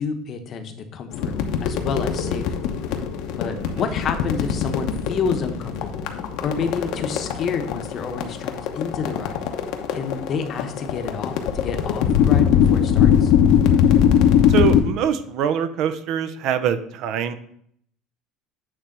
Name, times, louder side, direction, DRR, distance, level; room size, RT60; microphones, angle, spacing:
voice 1, 0.0-1.3 1.6-2.8 3.4-6.1 6.4-9.4 9.9-11.3 11.6-13.3, left 5 dB, 40° left, 6 dB, 0.9 m, -29 dB
sound 1, 1.1-14.8, left 9 dB, 70° left, 0.9 m, -21 dB
voice 2, 14.5-17.3, right 8 dB, 60° right, 11 dB, 0.6 m, -24 dB
8.9 x 3.4 x 5.3 m, 0.67 s
cardioid pair, 130°, 0 cm